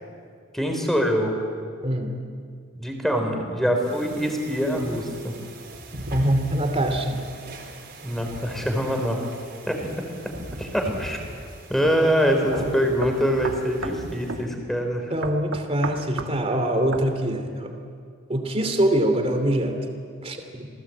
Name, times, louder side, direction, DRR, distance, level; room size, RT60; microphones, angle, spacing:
voice 1, 0.5-1.3 2.8-5.3 8.0-9.2 9.7-9.9 10.6-11.2 11.7-15.1, equal, ahead, 3 dB, 3.9 m, -24 dB
voice 2, 1.8-2.1 6.1-7.3 12.3-12.7 15.1-17.7 18.3-20.7, right 1 dB, 30° right, 5 dB, 2.7 m, -24 dB
sound 1, 3.8-14.5, right 1 dB, 50° right, 4.3 m, -40 dB
sound 2, 11.8-12.0 12.5-12.6 13.0-14.0 14.3-14.5 15.2-16.4 16.9-17.1, right 3 dB, 70° right, 1.7 m, -32 dB
27.5 x 18.5 x 8.6 m, 2.2 s
head